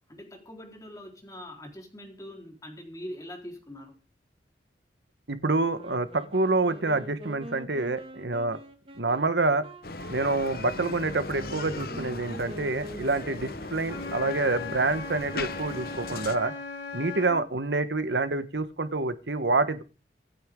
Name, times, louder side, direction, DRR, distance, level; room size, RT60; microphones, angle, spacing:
voice 1, 0.1-4.0, equal, 20° left, 1 dB, 4.0 m, -43 dB
voice 2, 5.3-8.6 9.0-9.7 10.1-16.5 16.9-19.8, right 3 dB, 75° right, 11 dB, 1.3 m, -27 dB
Wind instrument woodwind instrument, 5.7-14.7, right 1 dB, 30° right, 1.8 m, -45 dB
Bicycle, 9.8-16.4, left 3 dB, 55° left, 1.0 m, -38 dB
Wind instrument woodwind instrument 2, 13.8-17.4, left 5 dB, 85° left, 5.0 m, -38 dB
25.5 x 9.2 x 3.7 m, 0.35 s
head